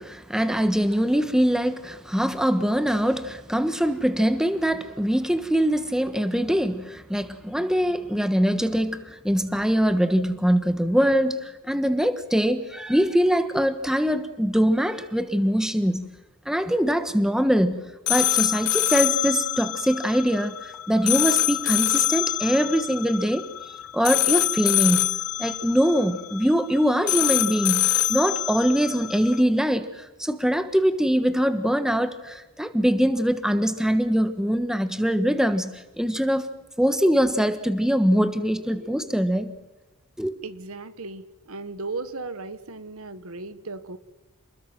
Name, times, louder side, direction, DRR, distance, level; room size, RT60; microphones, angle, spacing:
voice 1, 0.0-16.1 16.5-17.8 18.1-23.5 23.9-25.1 25.4-36.4 36.8-39.5 40.2-40.4, equal, 5° right, 10 dB, 1.3 m, -23 dB
sound 1, 18.1-29.4, left 14 dB, 85° left, 0.8 m, -25 dB
voice 2, 40.4-44.0, right 3 dB, 70° right, 13 dB, 1.6 m, -36 dB
29.0 x 20.5 x 6.1 m, 1.1 s
head